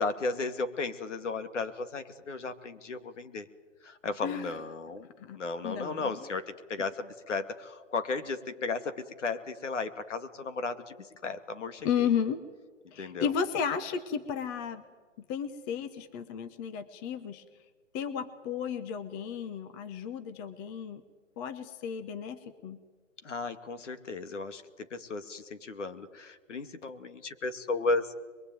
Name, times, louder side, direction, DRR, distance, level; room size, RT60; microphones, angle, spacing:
voice 1, 0.0-3.5 3.8-5.1 5.3-12.1 13.0-13.3 23.2-28.1, left 3 dB, 70° left, 10 dB, 2.5 m, -35 dB
voice 2, 4.2-4.5 5.2-5.4 5.6-6.1 11.8-12.4 12.9-14.8 15.3-17.4 17.9-21.0 21.4-22.8, left 7 dB, 15° left, 10 dB, 0.8 m, -33 dB
23.5 x 22.5 x 9.3 m, 1.4 s
hypercardioid pair, 150°, 38 cm